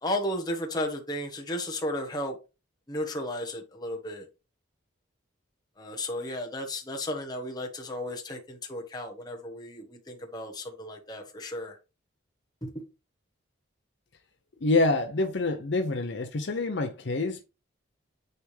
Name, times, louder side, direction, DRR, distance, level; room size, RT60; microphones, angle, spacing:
voice 1, 0.0-2.4 2.9-4.3 5.8-11.8 12.6-12.8, left 1 dB, 20° left, 1.2 m, -34 dB
voice 2, 14.6-17.4, left 2 dB, 60° left, 0.6 m, -26 dB
9.3 x 3.5 x 3.3 m
head